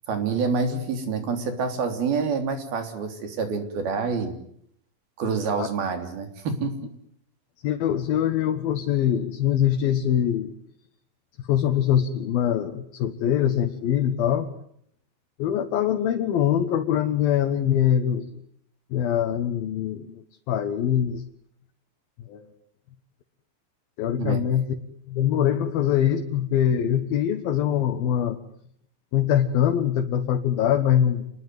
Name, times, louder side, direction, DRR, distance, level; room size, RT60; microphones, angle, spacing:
voice 1, 0.1-4.3 5.2-6.8 24.2-24.4, right 5 dB, 90° right, 6 dB, 5.4 m, -27 dB
voice 2, 7.6-10.5 11.5-14.5 15.4-18.3 18.9-20.2 20.5-21.2 22.3-22.4 24.0-24.6 25.1-28.4 29.1-31.3, left 10 dB, 80° left, 4 dB, 3.3 m, -23 dB
28.0 x 21.0 x 9.5 m, 0.71 s
omnidirectional pair, 4.2 m